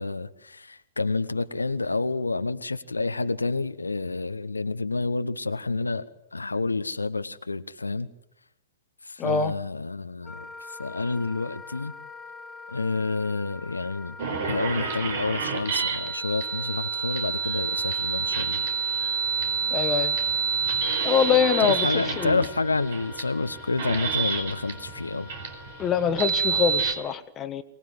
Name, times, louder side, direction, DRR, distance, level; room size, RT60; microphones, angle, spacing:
voice 1, 0.0-8.1 9.0-11.9 12.7-14.2 14.4-18.6 21.6-25.3, left 3 dB, 80° left, 11 dB, 0.9 m, -29 dB
voice 2, 9.2-9.5 19.7-20.2 21.0-21.9 22.2-22.4 25.8-27.6, left 7 dB, 25° left, 10 dB, 1.4 m, -24 dB
Wind instrument woodwind instrument, 10.2-26.8, left 5 dB, 5° left, 2.9 m, -45 dB
sound 1, 14.2-26.9, right 6 dB, 55° right, 4.5 m, -28 dB
24.0 x 19.5 x 9.3 m, 0.83 s
figure-of-eight pair, 105°, 0 cm